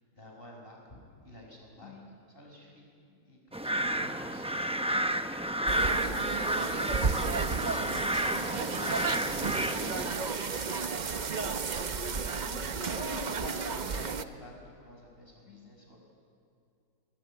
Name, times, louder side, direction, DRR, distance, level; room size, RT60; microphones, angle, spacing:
voice 1, 0.1-1.9 2.3-2.9 3.3-4.6 8.7-11.4 12.8-16.0, left 1 dB, 30° left, 0 dB, 6.3 m, -49 dB
voice 2, 1.8-2.2 3.1-3.3 5.6-7.9 12.1-13.6 15.4-15.7, left 7 dB, 50° left, 2 dB, 2.2 m, -51 dB
sound 1, 3.5-10.1, right 1 dB, 10° right, 0.3 m, -31 dB
sound 2, 5.7-14.2, right 5 dB, 40° right, 0.6 m, -33 dB
27.5 x 21.5 x 8.9 m, 2.4 s
omnidirectional pair, 1.8 m